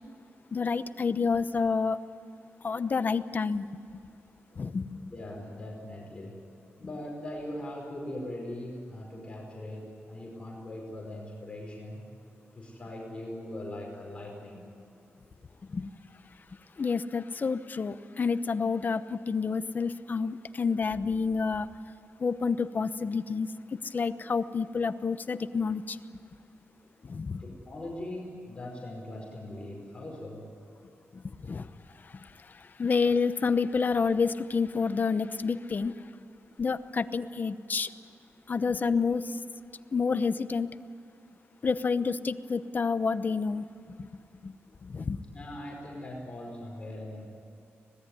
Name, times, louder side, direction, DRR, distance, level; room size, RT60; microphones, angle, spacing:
voice 1, 0.5-2.0 2.6-3.7 4.6-5.1 15.7-15.9 16.8-21.7 22.2-26.0 27.0-27.4 31.1-31.7 32.0-35.9 36.6-37.9 38.5-39.4 39.9-40.7 41.6-43.6 44.0-44.1 44.4-44.5 44.8-45.2, left 5 dB, 40° left, 12 dB, 0.9 m, -29 dB
voice 2, 5.1-6.4 6.8-12.1 12.5-14.7 27.4-30.5 45.3-47.3, left 1 dB, 25° left, -2 dB, 5.1 m, -40 dB
25.5 x 19.5 x 9.8 m, 2.6 s
wide cardioid pair, 125°, 5 cm